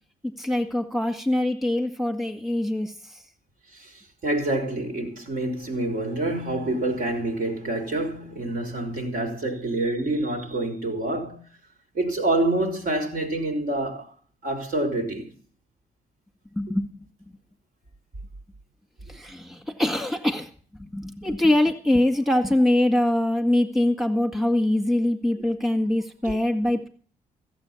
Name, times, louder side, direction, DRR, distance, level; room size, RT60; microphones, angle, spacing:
voice 1, 0.4-3.2 16.6-17.0 19.1-20.5 20.9-26.9, left 1 dB, ahead, 2.1 m, -23 dB
voice 2, 4.2-11.4 11.9-14.1 14.4-15.3 26.2-26.4, right 2 dB, 60° right, 3.6 m, -27 dB
14.5 x 8.2 x 7.1 m
hypercardioid pair, 50°, 17 cm